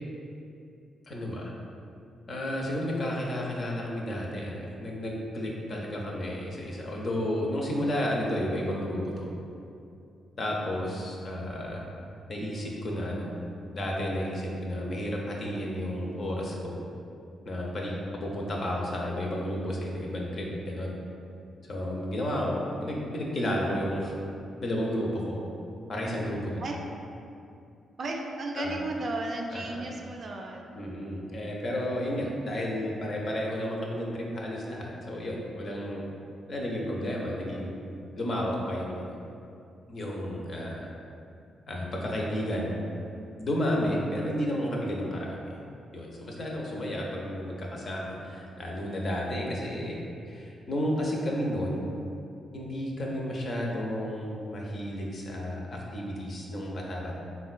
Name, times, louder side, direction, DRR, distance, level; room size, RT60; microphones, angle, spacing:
voice 1, 1.1-1.5 2.3-9.3 10.4-11.8 12.3-13.3 13.7-16.8 17.5-20.9 21.7-24.1 24.6-25.4 25.9-26.6 28.6-28.7 29.5-29.8 30.8-36.0 36.5-37.8 38.2-39.2 39.9-40.9 41.7-42.8 43.4-45.4 45.9-50.0 50.3-51.8 52.5-57.2, equal, 55° left, -2 dB, 0.5 m, -32 dB
voice 2, 28.0-30.8, right 2 dB, 55° right, 1 dB, 0.3 m, -34 dB
3.7 x 2.2 x 2.4 m, 2.6 s
supercardioid pair, 50°, 0 cm